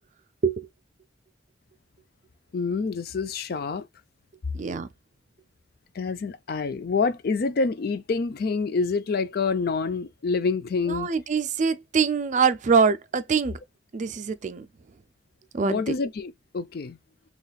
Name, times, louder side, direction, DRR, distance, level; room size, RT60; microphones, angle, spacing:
voice 1, 2.5-3.9 5.9-11.1 15.6-17.0, left 4 dB, 55° left, 0.4 m, -27 dB
voice 2, 4.5-4.9 10.9-13.6 13.9-14.7 15.5-15.9, right 5 dB, 40° right, 0.4 m, -24 dB
4.0 x 3.0 x 2.3 m
head